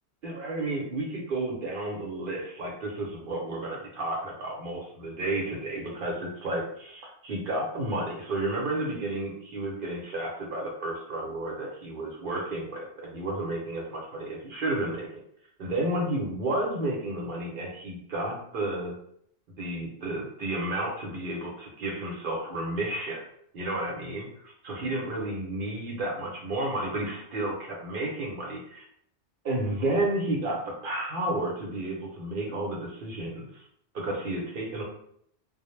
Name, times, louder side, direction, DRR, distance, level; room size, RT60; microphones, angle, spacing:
voice 1, 0.2-15.1 15.6-18.9 19.6-23.2 23.5-28.9 29.4-33.6 33.9-34.8, right 1 dB, 60° right, -2 dB, 0.7 m, -32 dB
2.0 x 2.0 x 3.0 m, 0.69 s
omnidirectional pair, 1.1 m